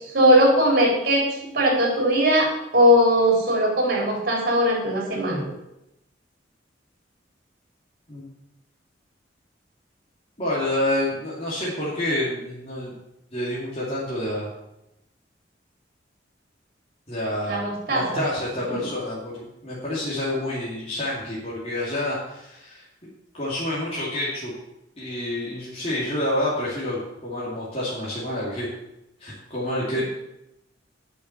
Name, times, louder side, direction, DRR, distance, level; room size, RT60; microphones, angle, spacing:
voice 1, 0.1-5.4 17.4-18.2 18.7-18.8, equal, 50° right, -1 dB, 4.0 m, -20 dB
voice 2, 10.4-12.9 13.3-14.5 17.1-22.8 23.3-24.5 25.0-28.7 29.2-30.0, left 1 dB, 30° left, -7 dB, 2.5 m, -28 dB
8.6 x 6.5 x 8.2 m, 0.88 s
head